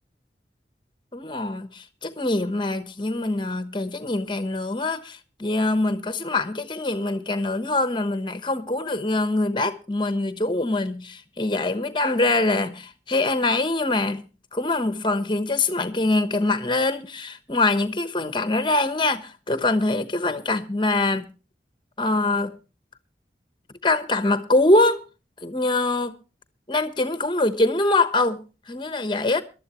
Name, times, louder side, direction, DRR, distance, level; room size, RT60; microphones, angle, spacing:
voice 1, 1.1-14.3 14.5-21.3 22.0-22.6 23.8-25.0 25.4-26.2 26.7-29.4, left 2 dB, 25° left, 1.0 m, -24 dB
21.5 x 12.5 x 3.0 m
head